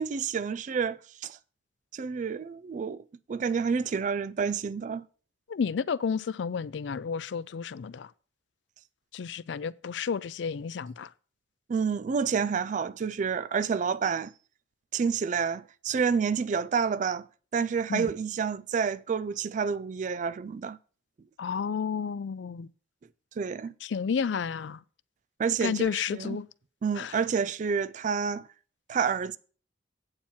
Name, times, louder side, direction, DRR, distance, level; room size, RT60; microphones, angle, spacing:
voice 1, 0.0-1.4 1.9-5.0 11.7-14.3 14.9-17.3 17.5-20.8 23.4-23.7 25.4-26.4 26.8-28.5 28.9-29.4, right 6 dB, 40° right, 0.3 m, -29 dB
voice 2, 5.5-8.1 9.1-11.1 17.9-18.1 21.4-22.7 23.8-24.8 25.6-26.5 27.0-27.2, left 6 dB, 70° left, 0.4 m, -31 dB
8.7 x 4.5 x 7.1 m
head